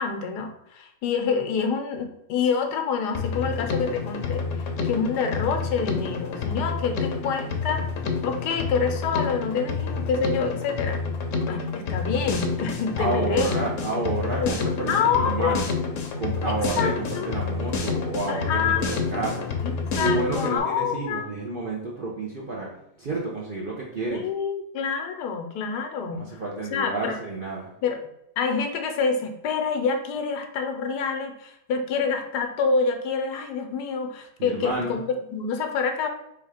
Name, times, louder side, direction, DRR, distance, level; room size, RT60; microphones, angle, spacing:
voice 1, 0.0-7.8 8.2-11.0 11.5-13.5 14.4-14.5 14.9-15.6 16.8-17.3 18.3-19.0 19.6-21.3 24.1-26.2 26.7-27.2 27.8-28.0 28.4-36.1, left 5 dB, 80° left, 6 dB, 1.3 m, -27 dB
Drum kit, 3.1-20.6, left 4 dB, 60° left, 0.9 m, -29 dB
voice 2, 13.0-15.7 16.2-19.5 20.0-22.7 23.0-24.3 26.1-27.7 34.4-35.0, right 2 dB, 50° right, -3 dB, 0.6 m, -30 dB
3.5 x 3.1 x 4.8 m, 0.81 s
omnidirectional pair, 1.8 m